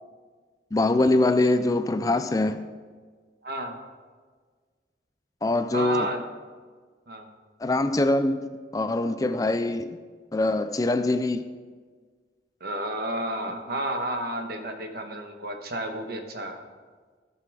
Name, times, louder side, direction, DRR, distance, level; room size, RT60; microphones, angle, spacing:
voice 1, 0.7-2.7 5.4-6.1 7.6-10.0 10.3-11.4, left 2 dB, 20° left, 10 dB, 0.4 m, -23 dB
voice 2, 3.4-3.8 5.7-6.2 7.1-7.3 12.6-16.6, right 1 dB, 60° right, 4 dB, 1.3 m, -31 dB
15.5 x 5.9 x 4.8 m, 1.5 s
head